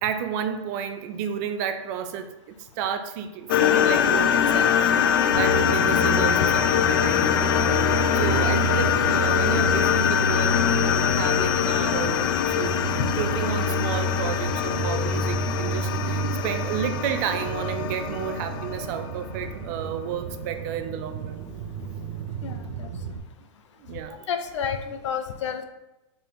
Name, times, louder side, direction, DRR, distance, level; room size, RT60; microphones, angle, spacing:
voice 1, 0.0-4.8 5.1-12.8 13.2-21.4 23.8-24.2, right 8 dB, 35° right, 8 dB, 0.5 m, -32 dB
sound 1, 3.5-19.5, left 9 dB, 45° left, 0.4 m, -23 dB
sound 2, 5.3-23.2, right 4 dB, 65° right, 0.8 m, -30 dB
voice 2, 22.4-22.9 24.3-25.6, left 7 dB, 75° left, 8 dB, 0.8 m, -30 dB
4.6 x 3.9 x 5.2 m, 0.96 s
supercardioid pair, 160°, 15 cm